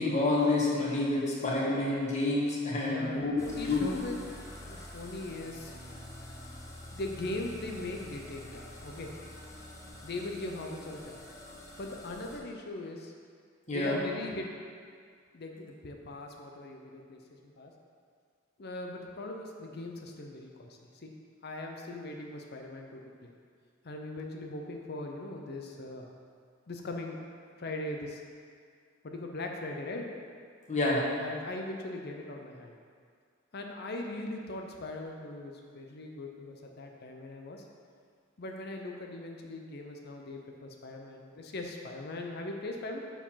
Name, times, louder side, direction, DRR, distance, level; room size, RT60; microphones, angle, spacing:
voice 1, 0.0-3.4 3.7-3.9 13.7-14.0 30.7-31.1, left 2 dB, 35° left, -4 dB, 1.4 m, -28 dB
voice 2, 2.8-4.2 4.6-5.7 6.9-9.1 10.0-11.2 11.8-13.1 13.7-14.5 15.3-17.7 18.6-21.1 21.4-23.3 23.8-26.1 26.7-27.2 27.6-28.2 29.0-30.1 31.2-32.7 33.5-37.6 38.4-43.0, left 2 dB, 50° left, 2 dB, 0.6 m, -40 dB
sound 1, 3.4-12.4, left 1 dB, 15° left, 0.8 m, -47 dB
6.9 x 4.7 x 5.7 m, 2.1 s
head